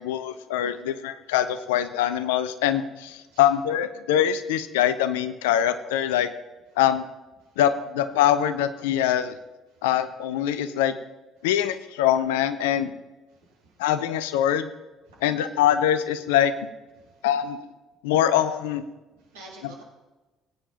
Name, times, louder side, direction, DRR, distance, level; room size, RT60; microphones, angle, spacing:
voice 1, 0.0-6.3 6.8-7.0 7.6-9.3 9.8-11.0 11.4-12.9 13.8-14.7 15.2-16.5 17.2-17.6 18.0-18.8 19.6-19.7, left 10 dB, 70° left, 12 dB, 0.6 m, -23 dB
voice 2, 13.3-13.7 15.1-15.5 17.0-17.2 19.3-19.8, right 2 dB, 75° right, -4 dB, 3.0 m, -49 dB
20.0 x 9.2 x 2.8 m, 1.1 s
figure-of-eight pair, 50°, 0 cm